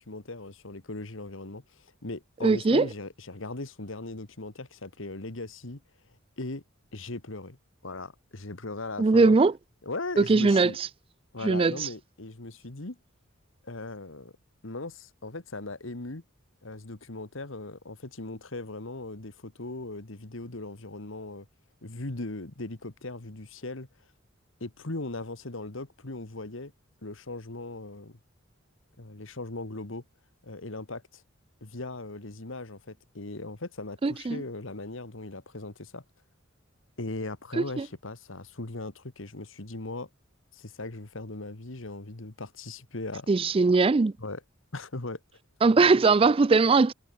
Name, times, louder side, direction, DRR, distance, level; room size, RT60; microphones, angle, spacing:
voice 1, 0.0-5.8 6.4-6.6 6.9-7.6 7.8-9.4 9.8-10.8 11.3-13.0 13.6-14.3 14.6-16.2 16.6-21.5 21.8-23.9 24.6-26.7 27.0-28.2 29.0-30.0 30.4-31.2 31.6-36.0 37.0-40.1 40.5-43.3 44.2-44.4 44.7-45.2 45.8-45.9, left 2 dB, 65° left, 1.7 m, -38 dB
voice 2, 2.4-2.9 9.0-9.5 10.2-10.9 11.4-11.9 34.0-34.4 37.5-37.9 43.3-44.1 45.6-46.9, right 4 dB, 25° right, 0.4 m, -21 dB
head